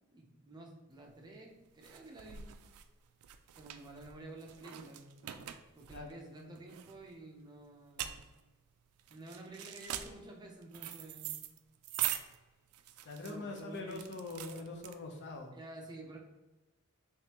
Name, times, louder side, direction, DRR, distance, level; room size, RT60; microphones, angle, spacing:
voice 1, 0.1-2.5 3.6-5.2 5.7-8.2 9.1-11.4 13.2-14.0 15.5-16.2, right 2 dB, 20° right, 0 dB, 0.6 m, -50 dB
sound 1, 1.0-15.4, right 11 dB, 75° right, 0.3 m, -43 dB
voice 2, 13.0-15.6, left 3 dB, 55° left, 3 dB, 0.6 m, -43 dB
3.5 x 3.2 x 2.9 m, 1.1 s
head